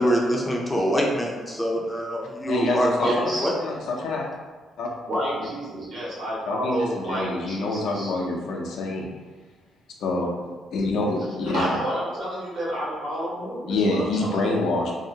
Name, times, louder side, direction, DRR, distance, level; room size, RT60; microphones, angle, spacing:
voice 1, 0.0-3.5, equal, 15° left, -1 dB, 0.5 m, -24 dB
voice 2, 2.5-3.3 3.6-4.2 4.8-4.9 6.5-9.0 10.0-10.5 10.7-11.7 13.7-15.0, left 2 dB, 75° left, 0 dB, 0.5 m, -26 dB
voice 3, 3.0-3.5 5.1-8.1 11.5-14.6, equal, 60° right, -7 dB, 1.2 m, -30 dB
2.6 x 2.0 x 2.7 m, 1.3 s
cardioid pair, 90°, 0 cm